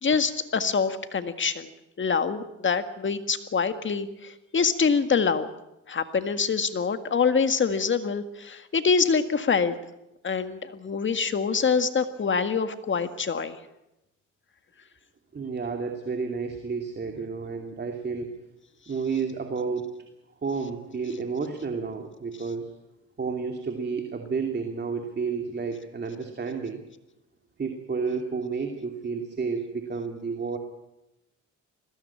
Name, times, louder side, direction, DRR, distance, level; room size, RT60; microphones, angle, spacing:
voice 1, 0.0-1.7 2.0-5.5 5.9-9.8 10.2-13.6, left 5 dB, 40° left, 9 dB, 1.8 m, -25 dB
voice 2, 15.3-18.3 18.9-19.9 20.4-22.7 23.2-26.8 27.6-30.6, right 5 dB, 35° right, 4 dB, 2.6 m, -31 dB
20.5 x 17.0 x 8.7 m, 0.92 s
cardioid pair, 90°, 30 cm